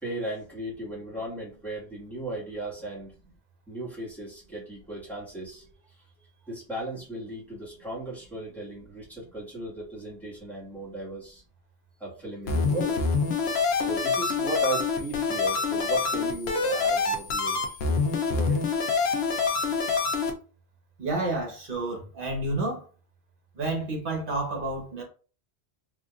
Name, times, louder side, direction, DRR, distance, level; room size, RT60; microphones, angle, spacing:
voice 1, 0.0-3.1 3.7-5.7 6.5-11.4 12.0-13.3 13.8-17.8 18.3-18.6, right 1 dB, ahead, 1.5 m, -36 dB
sound 1, 12.5-20.3, left 4 dB, 75° left, 0.9 m, -26 dB
voice 2, 21.0-22.8 23.5-25.0, right 2 dB, 55° right, 1.3 m, -30 dB
3.7 x 2.7 x 2.4 m
omnidirectional pair, 1.1 m